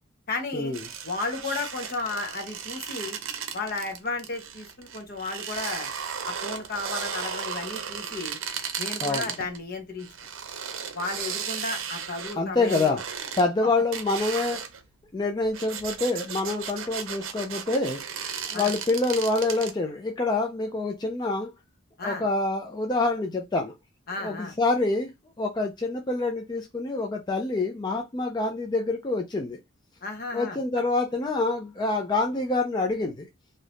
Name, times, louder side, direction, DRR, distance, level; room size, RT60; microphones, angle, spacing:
voice 1, 0.3-0.8 1.0-3.2 3.5-5.9 6.2-8.4 8.8-10.1 10.9-13.0 18.5-18.7 22.0-22.2 24.1-24.6 30.0-30.6, left 3 dB, 50° left, 0.9 m, -33 dB
sound 1, 0.7-9.6 10.0-13.4 13.9-14.8 15.4-19.7, right 7 dB, 75° right, 0.6 m, -35 dB
voice 2, 12.4-13.0 13.4-14.6 15.1-18.0 18.5-21.5 22.0-23.7 24.2-25.1 25.4-29.6 30.3-33.3, left 2 dB, 20° left, 0.4 m, -26 dB
2.7 x 2.5 x 3.3 m
head